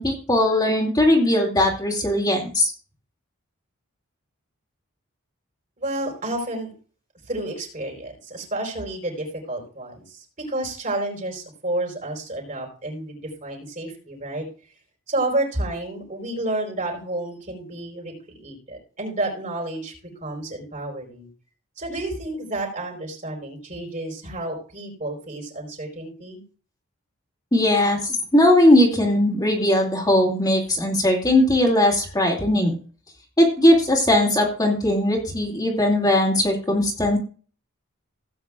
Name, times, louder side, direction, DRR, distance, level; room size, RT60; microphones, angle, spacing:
voice 1, 0.0-2.7 27.5-32.7 33.4-37.2, left 1 dB, 20° left, -1 dB, 2.5 m, -19 dB
voice 2, 5.8-6.7 7.3-14.5 15.1-18.1 18.4-19.9 20.2-21.3 21.8-26.4, right 1 dB, 40° right, 0 dB, 4.7 m, -30 dB
17.5 x 8.8 x 2.4 m, 0.39 s
head